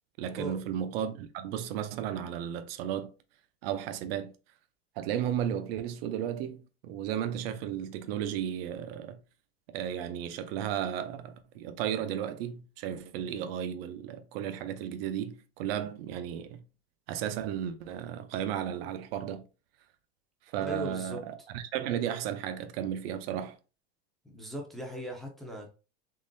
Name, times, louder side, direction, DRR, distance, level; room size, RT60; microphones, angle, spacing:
voice 1, 0.2-3.1 3.6-4.3 5.0-9.2 9.7-16.6 17.1-19.4 20.5-23.6, right 10 dB, 65° right, 0.6 m, -34 dB
voice 2, 20.6-21.2 24.2-25.7, right 1 dB, ahead, 0.5 m, -38 dB
3.8 x 3.0 x 2.6 m
supercardioid pair, 150°, 32 cm